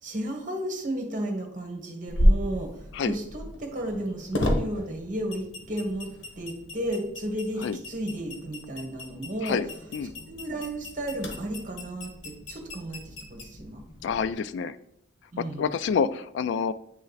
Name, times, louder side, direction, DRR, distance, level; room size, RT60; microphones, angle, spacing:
voice 1, 0.0-6.1 6.4-9.6 10.3-13.8 15.3-15.6, right 1 dB, 45° right, 2 dB, 1.4 m, -33 dB
sound 1, 2.1-14.3, equal, 90° left, 1.2 m, -32 dB
voice 2, 14.0-14.8 15.4-16.7, left 6 dB, 70° left, 15 dB, 0.3 m, -28 dB
8.9 x 3.2 x 4.0 m, 0.75 s
head